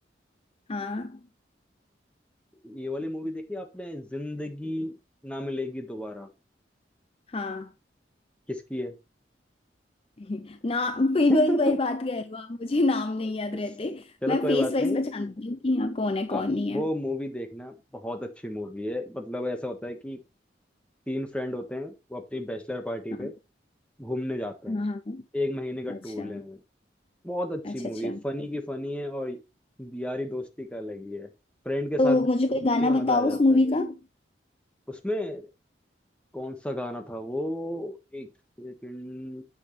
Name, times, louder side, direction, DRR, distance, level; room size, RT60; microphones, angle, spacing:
voice 1, 0.7-1.2 7.3-7.7 10.2-16.8 23.2-23.3 24.7-25.2 25.9-26.4 27.6-28.2 32.0-34.0, left 2 dB, 30° left, 0.5 m, -26 dB
voice 2, 2.6-5.0 5.2-6.3 8.5-9.0 11.3-11.8 14.2-15.1 16.3-20.2 21.1-23.3 24.0-24.9 25.3-26.6 27.2-29.4 29.8-31.3 31.6-32.3 32.8-33.6 34.9-35.5 36.3-38.3 38.6-39.4, left 1 dB, 5° left, 1.4 m, -33 dB
9.2 x 6.4 x 3.2 m
head